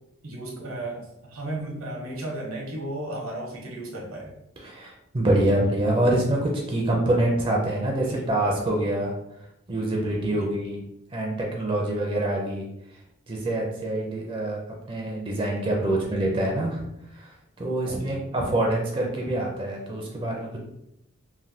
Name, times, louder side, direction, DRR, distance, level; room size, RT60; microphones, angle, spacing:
voice 1, 0.2-4.3 8.0-8.3 10.3-10.5 17.9-18.2, right 1 dB, 75° right, -2 dB, 0.9 m, -35 dB
voice 2, 4.6-9.1 9.7-10.8 11.1-12.6 13.3-14.6 14.9-16.8 17.2-17.3 17.6-20.6, right 1 dB, 25° right, -1 dB, 0.4 m, -25 dB
3.2 x 2.2 x 2.6 m, 0.81 s
head